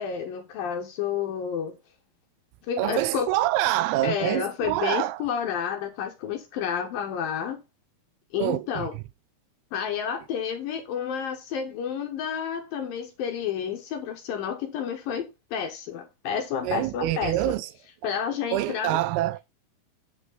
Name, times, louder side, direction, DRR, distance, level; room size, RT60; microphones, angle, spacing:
voice 1, 0.0-1.8 2.7-3.3 4.0-7.6 8.3-9.0 9.7-17.5 18.0-19.0, left 7 dB, 70° left, 2.4 m, -30 dB
voice 2, 2.8-5.2 8.4-8.9 16.6-17.7 18.5-19.4, right 15 dB, 80° right, 2.4 m, -26 dB
8.5 x 5.9 x 3.8 m
omnidirectional pair, 4.7 m